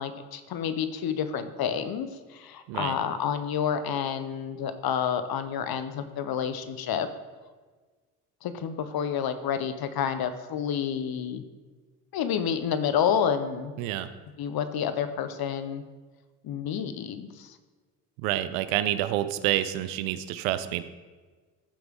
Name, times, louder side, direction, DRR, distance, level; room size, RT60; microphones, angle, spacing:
voice 1, 0.0-7.1 8.4-11.4 12.1-13.7 14.4-15.8 16.4-17.6, left 8 dB, 55° left, 11 dB, 1.0 m, -29 dB
voice 2, 13.8-14.1 18.2-20.8, right 13 dB, 85° right, 12 dB, 0.6 m, -28 dB
14.5 x 5.9 x 3.7 m, 1.4 s
hypercardioid pair, 60°, 43 cm